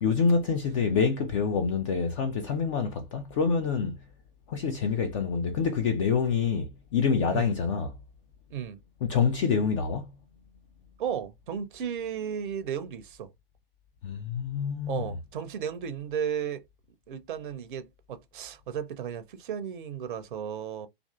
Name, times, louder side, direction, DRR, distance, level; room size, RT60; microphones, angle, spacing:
voice 1, 0.0-4.0 4.5-8.0 9.0-10.1 14.0-15.1, left 5 dB, 35° left, 0.4 m, -26 dB
voice 2, 11.0-13.3 14.9-16.6 17.1-20.9, right 8 dB, 60° right, 0.5 m, -34 dB
2.5 x 2.4 x 2.3 m
figure-of-eight pair, 100°, 29 cm